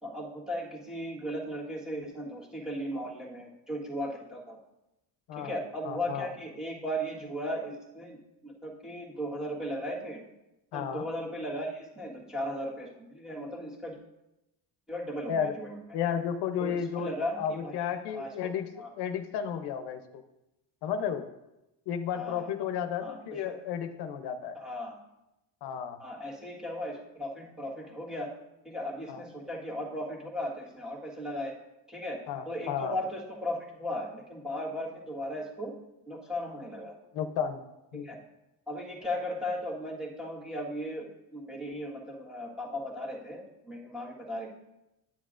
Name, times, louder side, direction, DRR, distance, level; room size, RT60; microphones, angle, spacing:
voice 1, 0.0-4.6 5.4-10.2 10.7-14.0 14.9-15.7 16.6-18.3 18.8-18.9 22.1-22.5 23.0-23.6 24.5-25.0 26.0-28.3 28.6-31.5 31.9-32.2 32.5-35.7 36.1-36.9 38.0-38.2 38.7-44.5, equal, ahead, -3 dB, 1.5 m, -37 dB
voice 2, 5.8-6.3 10.7-11.1 15.3-15.5 15.9-18.7 19.0-20.2 20.8-21.3 21.9-24.6 25.6-26.0 29.1-29.2 32.3-32.9 37.1-37.6 37.9-38.1, left 8 dB, 80° left, 8 dB, 0.8 m, -33 dB
10.0 x 8.7 x 2.5 m, 0.93 s
cardioid pair, 150°, 39 cm